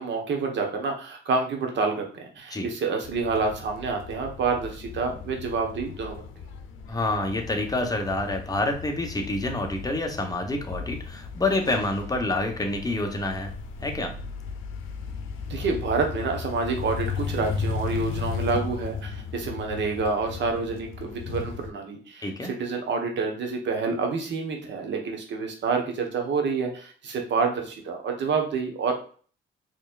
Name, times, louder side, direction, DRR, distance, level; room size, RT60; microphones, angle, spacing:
voice 1, 0.0-6.2 15.5-28.9, right 4 dB, 65° right, 2 dB, 1.1 m, -28 dB
sound 1, 3.0-21.7, left 5 dB, 85° left, 0.6 m, -36 dB
voice 2, 6.9-13.5 13.8-14.1 22.2-22.5, left 2 dB, 20° left, 3 dB, 0.9 m, -27 dB
4.4 x 3.2 x 2.4 m, 0.43 s
cardioid pair, 90°, 20 cm